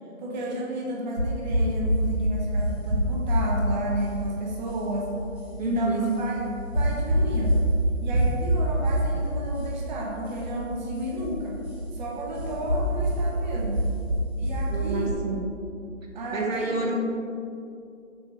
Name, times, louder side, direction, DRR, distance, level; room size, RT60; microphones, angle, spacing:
voice 1, 0.2-5.1 5.6-6.4 6.7-7.7 8.0-11.6 11.9-13.8 14.4-15.2 16.1-16.9, equal, 35° right, -2 dB, 0.8 m, -32 dB
sound 1, 1.2-15.1, right 1 dB, 10° right, 0.5 m, -27 dB
voice 2, 5.6-6.1 14.7-15.4 16.3-17.0, right 3 dB, 80° right, -1 dB, 1.4 m, -27 dB
6.2 x 6.0 x 3.1 m, 2.6 s
figure-of-eight pair, 145°, 39 cm